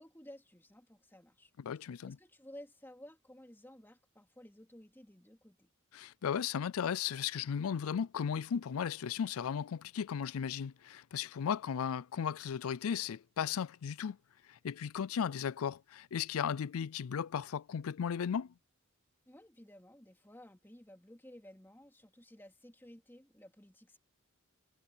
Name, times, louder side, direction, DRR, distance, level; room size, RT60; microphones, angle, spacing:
voice 1, 0.0-1.5 2.1-5.7 19.3-24.0, left 1 dB, 10° left, 2.8 m, -55 dB
voice 2, 1.6-2.2 5.9-14.2 14.5-18.5, left 7 dB, 85° left, 0.4 m, -36 dB
head